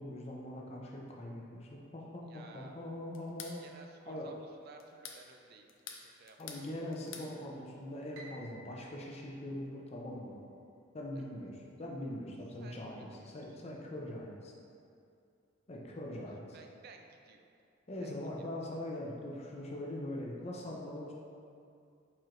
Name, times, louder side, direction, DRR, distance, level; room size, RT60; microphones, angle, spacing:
voice 1, 0.0-3.6 4.1-4.3 6.4-10.4 10.9-14.5 15.7-16.6 17.9-21.1, left 1 dB, 35° left, -2 dB, 0.6 m, -42 dB
voice 2, 2.3-2.8 3.6-6.4 11.1-11.5 12.6-13.6 16.5-17.5 18.0-18.5, right 4 dB, 55° right, 4 dB, 0.4 m, -57 dB
Lighter Strike, 3.1-3.6 4.8-5.2 5.7-6.7 6.9-7.3, left 7 dB, 80° left, 0.5 m, -47 dB
Piano, 8.1-10.4, right 1 dB, 90° right, 0.6 m, -56 dB
4.7 x 4.4 x 2.5 m, 2.5 s
head